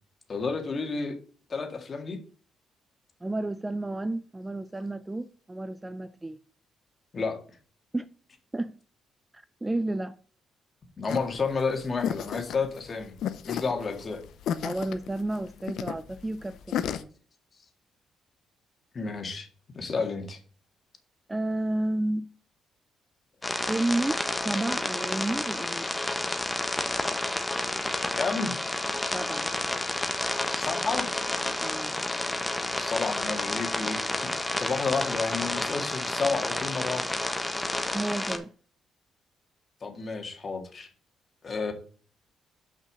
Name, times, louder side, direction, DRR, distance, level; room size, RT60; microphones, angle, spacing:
voice 1, 0.3-1.2 1.5-2.2 7.1-7.4 11.0-13.1 13.4-14.2 18.9-19.5 19.7-20.4 28.2-28.6 30.6-31.1 32.8-37.1 39.8-40.9 41.4-41.7, left 4 dB, 40° left, 1.8 m, -31 dB
voice 2, 3.2-6.4 7.9-8.1 8.5-8.8 9.3-10.2 14.6-17.1 21.3-22.3 23.7-25.9 29.1-29.5 31.6-31.9 37.9-38.5, right 2 dB, 15° right, 0.4 m, -31 dB
sound 1, 11.1-17.0, left 9 dB, 75° left, 0.6 m, -33 dB
sound 2, 23.4-38.4, left 1 dB, 10° left, 1.1 m, -30 dB
5.9 x 5.8 x 6.2 m
cardioid pair, 90°, 0 cm